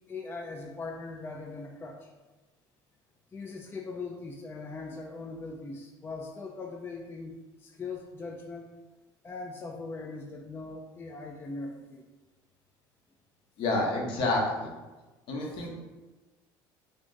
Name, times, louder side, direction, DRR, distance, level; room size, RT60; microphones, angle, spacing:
voice 1, 0.0-2.1 3.3-8.7 9.2-12.0 15.5-15.6, left 3 dB, 20° left, 1 dB, 0.3 m, -40 dB
voice 2, 13.6-14.7 15.3-15.8, left 2 dB, 60° left, 0 dB, 0.8 m, -29 dB
2.6 x 2.4 x 3.6 m, 1.2 s
supercardioid pair, 90°, 10 cm